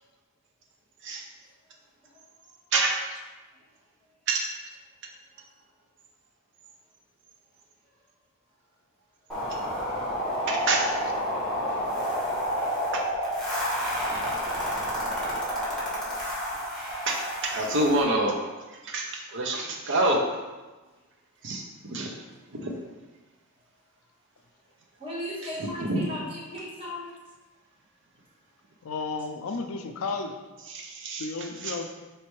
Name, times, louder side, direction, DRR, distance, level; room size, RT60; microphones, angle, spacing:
voice 1, 1.8-2.6 3.5-3.7 5.3-5.8 7.8-7.9 11.6-11.9 22.0-22.1 25.0-27.1, equal, 25° right, -8 dB, 1.4 m, -40 dB
sound 1, 9.3-18.0, equal, ahead, 1.1 m, -29 dB
voice 2, 10.5-10.8 12.9-13.0 17.1-18.4 18.8-20.3 21.4-22.1 22.5-22.7 25.8-26.1 30.7-31.2 31.6-31.7, right 2 dB, 60° right, 1 dB, 0.6 m, -27 dB
voice 3, 28.8-30.4 31.2-31.9, left 4 dB, 75° left, 6 dB, 0.4 m, -33 dB
4.2 x 3.2 x 3.1 m, 1.2 s
head